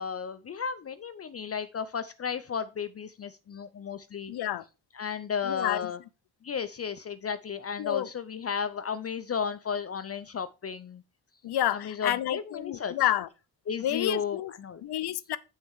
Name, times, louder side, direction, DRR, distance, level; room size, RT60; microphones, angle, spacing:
voice 1, 0.0-4.3 4.9-6.0 6.4-11.0 11.7-12.9 13.7-14.8, left 6 dB, 40° left, 0.6 m, -34 dB
voice 2, 4.3-4.6 5.4-5.9 7.8-8.1 11.4-13.3 13.8-14.5 14.8-15.4, left 12 dB, 80° left, 0.7 m, -29 dB
7.5 x 6.4 x 4.7 m
cardioid pair, 95°, 38 cm